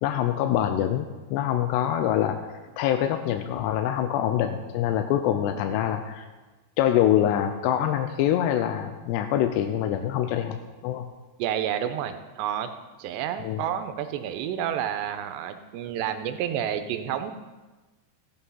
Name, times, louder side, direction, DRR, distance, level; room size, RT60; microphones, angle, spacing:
voice 1, 0.0-2.4 2.8-6.3 6.8-10.6 10.8-11.1 13.4-13.6, left 11 dB, 85° left, 7 dB, 2.8 m, -25 dB
voice 2, 11.4-12.7 13.0-17.3, right 10 dB, 85° right, 9 dB, 2.9 m, -30 dB
14.5 x 8.7 x 5.6 m, 1.2 s
omnidirectional pair, 4.9 m